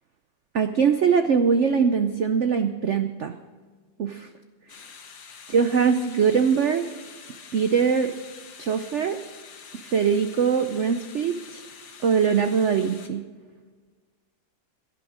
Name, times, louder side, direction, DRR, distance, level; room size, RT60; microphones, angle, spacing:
voice 1, 0.5-3.4 4.0-4.3 5.5-6.8 7.5-8.1 8.6-9.2 9.8-11.6 12.0-13.2, right 6 dB, 80° right, 8 dB, 0.6 m, -22 dB
sound 1, 4.7-13.1, left 6 dB, 60° left, 1.7 m, -46 dB
17.0 x 11.5 x 5.0 m, 1.4 s
omnidirectional pair, 2.1 m